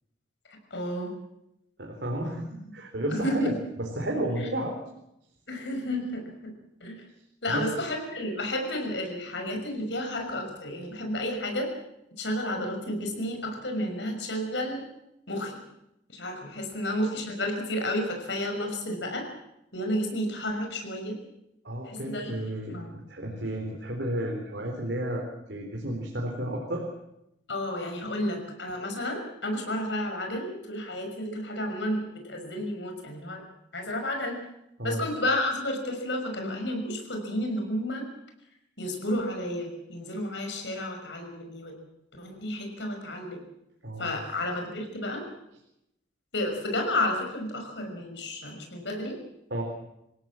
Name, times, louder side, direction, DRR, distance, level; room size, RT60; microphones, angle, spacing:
voice 1, 0.7-1.1 3.1-3.6 4.3-4.5 5.5-6.5 6.8-7.0 7.4-11.7 12.2-14.8 15.3-15.6 16.1-19.3 19.7-21.2 21.8-22.3 22.7-22.9 27.5-33.4 33.7-34.4 34.8-38.0 38.8-41.7 42.2-43.4 44.0-45.2 46.3-49.2, left 1 dB, 75° left, 3 dB, 6.1 m, -31 dB
voice 2, 1.8-4.7 7.5-7.7 21.6-22.8 23.1-26.9 34.8-35.0 43.8-44.1 49.5-49.6, right 1 dB, 65° right, 0 dB, 3.9 m, -32 dB
27.5 x 17.0 x 7.6 m, 0.85 s
head